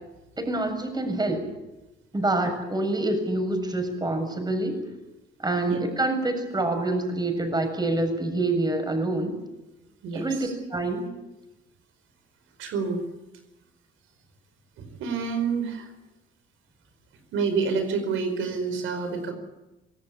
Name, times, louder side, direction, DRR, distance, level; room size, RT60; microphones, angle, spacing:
voice 1, 0.4-1.4 2.1-4.8 5.4-9.3 10.1-11.1, right 2 dB, 20° right, 6 dB, 7.1 m, -26 dB
voice 2, 10.0-10.5 12.6-13.1 14.8-15.9 17.3-19.3, right 5 dB, 85° right, 7 dB, 4.9 m, -28 dB
26.5 x 17.5 x 8.5 m, 1.0 s
cardioid pair, 90°, 20 cm